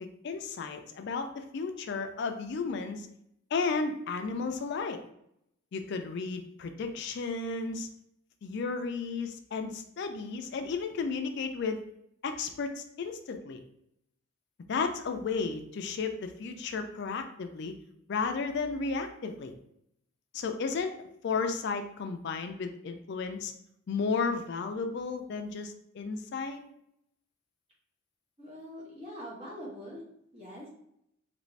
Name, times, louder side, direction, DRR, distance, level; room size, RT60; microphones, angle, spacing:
voice 1, 0.2-3.1 3.5-5.0 5.7-7.9 8.4-11.8 12.2-13.6 14.7-17.7 18.1-19.5 20.3-20.9 21.2-23.5 23.9-26.6, left 4 dB, 50° left, 6 dB, 0.3 m, -33 dB
voice 2, 28.4-30.0 30.3-30.7, equal, 30° right, -5 dB, 1.1 m, -43 dB
3.2 x 2.5 x 3.1 m, 0.75 s
head